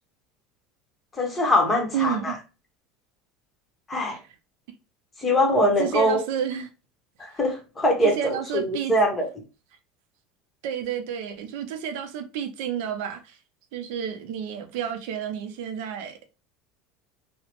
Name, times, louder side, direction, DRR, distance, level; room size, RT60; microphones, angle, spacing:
voice 1, 1.2-2.3 3.9-4.2 5.2-6.2 7.2-8.2 8.5-9.3, left 1 dB, 20° left, 1.0 m, -22 dB
voice 2, 1.9-2.4 4.1-4.2 5.8-6.7 8.0-8.9 10.6-13.4 13.7-16.2, right 8 dB, 75° right, 0.5 m, -30 dB
2.9 x 2.0 x 2.9 m
supercardioid pair, 105°, 0 cm